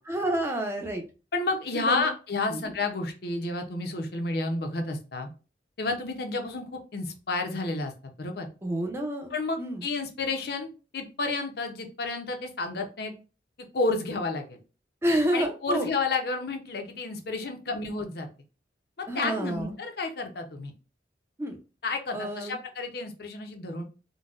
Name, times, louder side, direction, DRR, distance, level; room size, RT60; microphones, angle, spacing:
voice 1, 0.1-1.0 1.7-2.1 2.5-2.7 8.6-9.3 9.6-9.8 15.0-15.9 19.1-19.7 21.4-21.6 22.1-22.6, right 1 dB, 15° right, 3 dB, 0.5 m, -29 dB
voice 2, 1.3-5.3 5.8-6.6 6.9-7.9 8.2-8.5 9.3-13.1 13.7-14.6 15.3-18.3 19.0-20.7 21.8-23.8, left 3 dB, 60° left, 5 dB, 0.6 m, -31 dB
3.9 x 2.1 x 2.4 m, 0.33 s
head